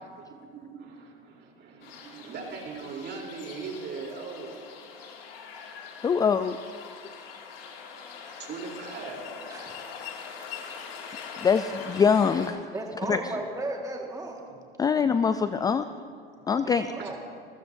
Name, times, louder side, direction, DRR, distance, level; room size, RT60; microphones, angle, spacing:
voice 1, 0.0-4.6 8.4-9.2 11.2-11.3 14.5-14.6 15.4-15.8 16.3-16.4 16.8-17.2, right 5 dB, 40° right, 0 dB, 3.6 m, -40 dB
sound 1, 1.8-12.5, left 6 dB, 75° left, 2.4 m, -43 dB
voice 2, 6.0-6.6 11.4-12.7 13.1-13.2 14.8-15.8 16.5-16.9, left 6 dB, 15° left, 11 dB, 0.3 m, -23 dB
voice 3, 12.7-14.4 16.6-17.2, right 2 dB, 10° right, 1 dB, 1.8 m, -35 dB
26.5 x 14.5 x 2.7 m, 2.4 s
hypercardioid pair, 100°, 30 cm